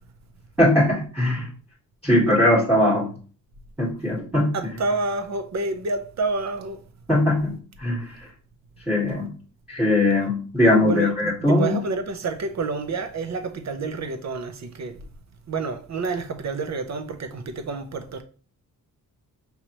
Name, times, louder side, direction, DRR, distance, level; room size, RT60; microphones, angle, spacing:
voice 1, 0.6-1.5 2.0-3.1 3.8-4.5 7.1-8.2 8.9-9.3 9.7-11.7, left 1 dB, ahead, 1.5 m, -20 dB
voice 2, 4.5-6.8 10.8-15.0 15.5-18.2, right 3 dB, 50° right, 0.7 m, -29 dB
5.4 x 2.9 x 3.0 m
wide cardioid pair, 100°, 36 cm